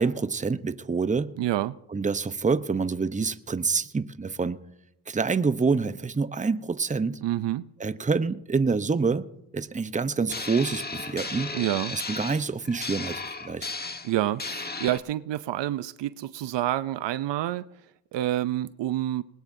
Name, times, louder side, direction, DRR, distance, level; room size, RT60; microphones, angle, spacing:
voice 1, 0.0-1.3 1.9-4.6 5.1-7.2 7.8-9.3 9.5-11.5 11.9-13.7, right 4 dB, 15° right, 0.8 m, -27 dB
voice 2, 1.4-1.7 7.2-7.7 11.5-11.9 14.0-17.7 18.1-19.2, right 13 dB, 65° right, 0.6 m, -28 dB
sound 1, 10.3-15.0, left 3 dB, 20° left, 1.4 m, -35 dB
21.0 x 19.5 x 2.7 m
supercardioid pair, 70°, 46 cm